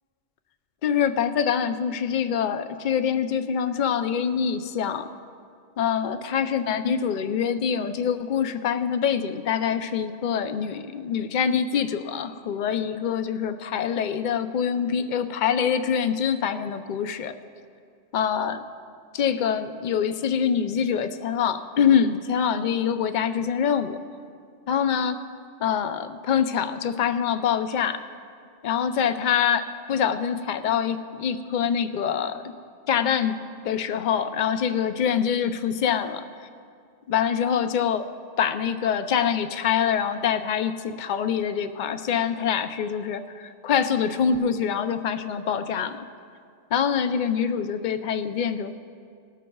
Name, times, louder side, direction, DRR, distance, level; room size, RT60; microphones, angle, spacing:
voice 1, 0.8-5.1 5.8-17.3 18.1-18.6 19.1-24.0 24.7-25.2 25.6-28.0 28.6-29.6 29.9-32.4 32.9-33.4 33.6-36.5 37.1-38.0 38.4-46.1 46.7-48.7, left 7 dB, 55° left, 9 dB, 0.6 m, -25 dB
19.5 x 13.0 x 2.3 m, 2.3 s
omnidirectional pair, 1.2 m